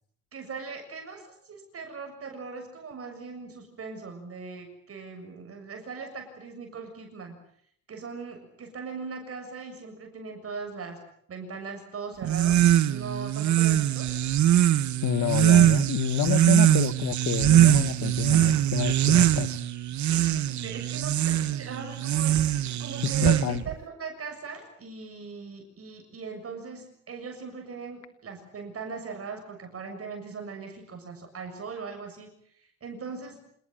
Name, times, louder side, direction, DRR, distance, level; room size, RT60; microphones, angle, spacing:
voice 1, 0.3-7.4 7.9-11.0 11.3-14.1 20.1-22.4 22.8-33.4, right 5 dB, 50° right, 4 dB, 7.0 m, -40 dB
sound 1, 12.2-23.7, right 11 dB, 70° right, 1.4 m, -22 dB
voice 2, 15.0-19.5 23.0-23.6, left 12 dB, 70° left, 13 dB, 1.2 m, -29 dB
27.5 x 19.5 x 9.1 m, 0.66 s
cardioid pair, 90°, 30 cm